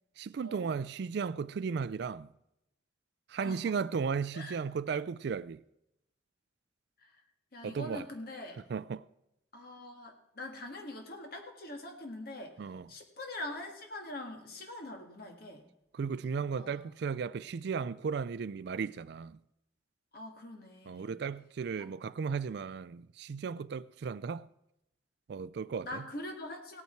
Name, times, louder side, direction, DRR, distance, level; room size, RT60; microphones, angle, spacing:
voice 1, 0.2-2.3 3.3-5.6 7.6-8.0 8.7-9.0 12.6-12.9 15.9-19.4 20.9-24.5 25.3-26.0, right 5 dB, 60° right, 0.3 m, -35 dB
voice 2, 3.4-3.8 4.3-4.6 7.0-7.2 7.5-8.6 9.5-12.6 12.9-15.6 16.5-16.8 20.1-21.1 21.8-21.9 25.8-26.8, left 1 dB, 55° left, 1.9 m, -43 dB
17.0 x 8.4 x 4.5 m
head